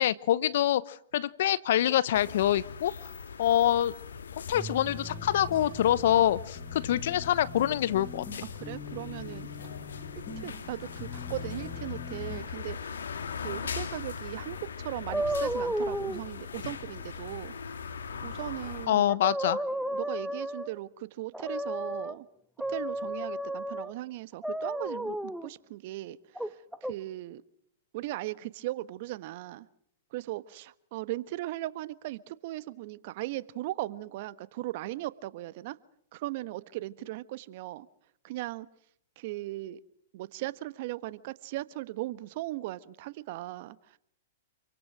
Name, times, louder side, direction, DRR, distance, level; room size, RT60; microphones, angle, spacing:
voice 1, 0.0-2.9 3.4-3.9 4.5-8.4 18.9-19.6, left 12 dB, 60° left, 18 dB, 1.0 m, -25 dB
sound 1, 2.1-18.9, left 6 dB, 80° left, 2.3 m, -40 dB
sound 2, 4.5-12.6, left 3 dB, 25° left, 4.4 m, -44 dB
voice 2, 8.6-9.5 10.4-12.9 13.4-17.5 18.2-19.0 19.9-22.3 22.7-27.4 27.9-29.7 30.1-35.8 36.1-37.9 38.2-38.7 39.2-39.8 40.1-44.0, right 17 dB, 50° right, 16 dB, 1.3 m, -38 dB
sound 3, 15.1-16.2 18.7-18.8 19.1-20.8 21.3-22.1 22.6-23.9 24.4-25.5 26.3-26.9, right 1 dB, ahead, 1.0 m, -32 dB
27.5 x 24.5 x 6.3 m, 0.68 s
hypercardioid pair, 115°, 0 cm